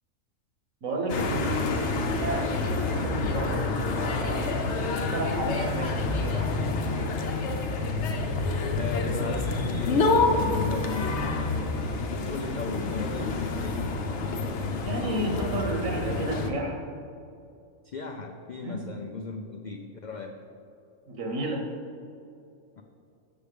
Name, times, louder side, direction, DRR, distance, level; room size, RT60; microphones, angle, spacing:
voice 1, 0.8-1.9 2.2-4.6 4.9-7.1 14.8-16.8 18.6-18.9 21.1-21.7, right 1 dB, 80° right, 2 dB, 1.5 m, -32 dB
sound 1, 1.1-16.5, left 3 dB, 65° left, 1.0 m, -28 dB
voice 2, 8.8-11.6 12.1-13.9 17.8-20.4 22.8-22.9, left 4 dB, 85° left, 3 dB, 0.4 m, -37 dB
6.8 x 6.7 x 4.9 m, 2.5 s
omnidirectional pair, 1.4 m